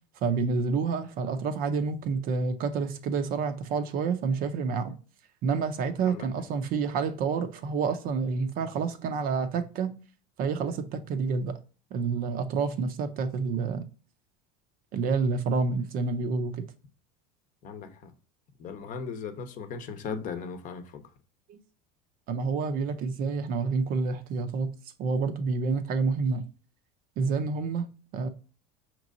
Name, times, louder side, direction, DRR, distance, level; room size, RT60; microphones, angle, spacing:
voice 1, 0.2-4.9 5.4-9.9 10.4-11.5 11.9-13.8 14.9-16.7 21.5-21.6 22.3-24.7 25.0-26.4 27.2-27.9 28.1-28.3, right 5 dB, 45° right, 0.6 m, -28 dB
voice 2, 17.6-18.1 18.6-21.0, left 5 dB, 40° left, 0.8 m, -37 dB
5.2 x 3.0 x 2.5 m
supercardioid pair, 125°, 20 cm